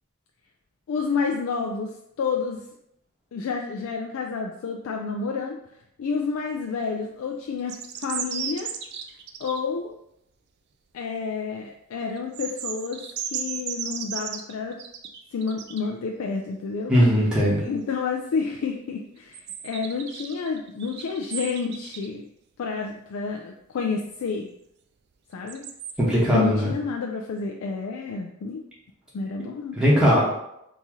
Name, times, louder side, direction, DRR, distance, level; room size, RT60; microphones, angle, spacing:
voice 1, 0.9-1.9 2.2-2.6 3.3-5.6 6.0-8.7 9.4-9.9 10.9-14.8 15.3-16.9 17.6-22.3 22.6-24.5 25.3-25.7 26.3-28.6 29.1-29.8, left 5 dB, 80° left, 1 dB, 0.3 m, -29 dB
sound 1, 7.6-9.6 12.2-15.9 19.3-22.1 25.5-25.9, right 8 dB, 50° right, 0.3 m, -34 dB
voice 2, 16.9-17.6 26.0-26.7 29.7-30.3, equal, 5° right, -7 dB, 0.9 m, -19 dB
2.9 x 2.7 x 3.6 m, 0.80 s
head